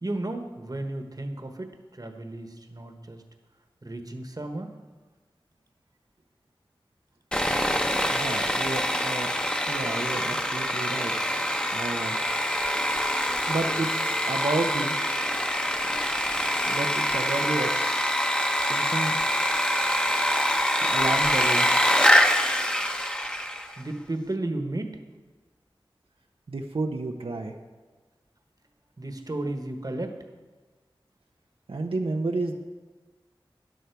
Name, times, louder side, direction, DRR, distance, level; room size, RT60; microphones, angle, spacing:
voice 1, 0.0-3.2 3.8-4.7 23.8-25.0 29.0-30.2, right 2 dB, 40° right, 6 dB, 1.3 m, -33 dB
Sawing, 7.3-23.7, equal, 10° left, 1.0 m, -25 dB
voice 2, 8.1-9.3 9.7-11.1 11.7-12.2 13.5-14.9 16.7-18.1 18.7-19.2 20.8-21.7 26.5-27.5 31.7-32.6, right 2 dB, 85° right, 2 dB, 0.9 m, -31 dB
13.5 x 10.0 x 4.7 m, 1.3 s
wide cardioid pair, 50°, 9 cm